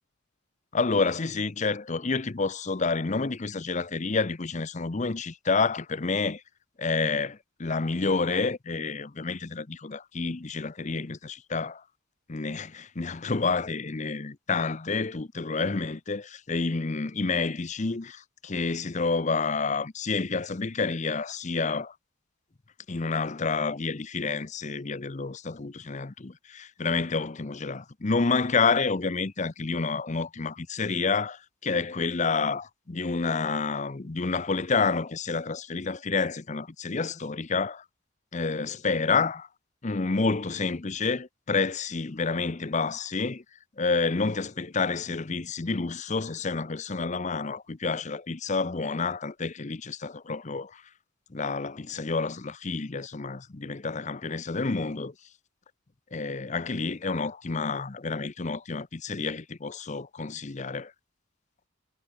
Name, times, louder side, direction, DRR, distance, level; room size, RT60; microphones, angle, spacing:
voice 1, 0.7-6.4 6.8-11.8 12.3-21.9 22.9-37.8 38.3-39.5 39.8-43.4 43.8-50.8 51.3-55.1 56.1-60.9, left 4 dB, 35° left, 0.7 m, -29 dB
head